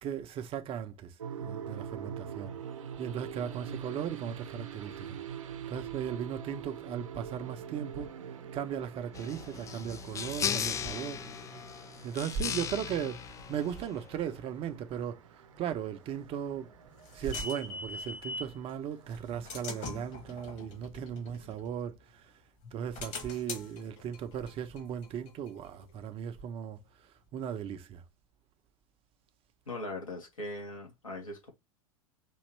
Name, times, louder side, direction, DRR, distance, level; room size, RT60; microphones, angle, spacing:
voice 1, 0.0-2.6 3.0-5.2 5.7-8.1 8.5-11.2 12.0-13.2 13.5-15.2 15.6-16.7 17.1-22.3 22.7-26.8 27.3-28.0, right 8 dB, 35° right, 0.8 m, -37 dB
sound 1, 1.2-20.4, right 8 dB, 70° right, 0.8 m, -45 dB
sound 2, 9.1-14.2, left 7 dB, 20° left, 0.4 m, -37 dB
sound 3, 16.4-18.6 19.1-22.2 22.6-26.1, left 3 dB, 40° left, 1.5 m, -43 dB
voice 2, 29.7-31.5, left 1 dB, 85° left, 2.0 m, -40 dB
5.3 x 2.9 x 3.2 m
figure-of-eight pair, 90°, 17 cm